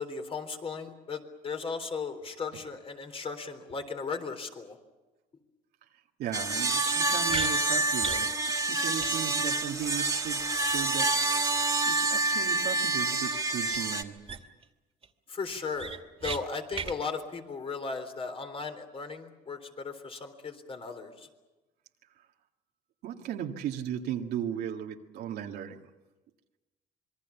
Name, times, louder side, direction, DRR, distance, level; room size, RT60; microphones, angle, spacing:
voice 1, 0.0-4.8 15.3-16.0 16.2-21.3, left 4 dB, 35° left, 6 dB, 3.8 m, -36 dB
voice 2, 6.2-11.1 11.4-14.2 23.0-25.9, right 9 dB, 75° right, 2 dB, 1.9 m, -37 dB
sound 1, 6.3-14.0, right 3 dB, 20° right, 2.2 m, -28 dB
sound 2, 7.3-7.5 8.0-8.3 8.6-8.7 9.0-9.1 9.4-9.5 13.7-13.8 14.2-14.6 15.0-15.1 15.5-16.4 16.7-16.9, right 5 dB, 35° right, 2.3 m, -35 dB
26.5 x 22.5 x 7.1 m, 1.1 s
cardioid pair, 110°, 17 cm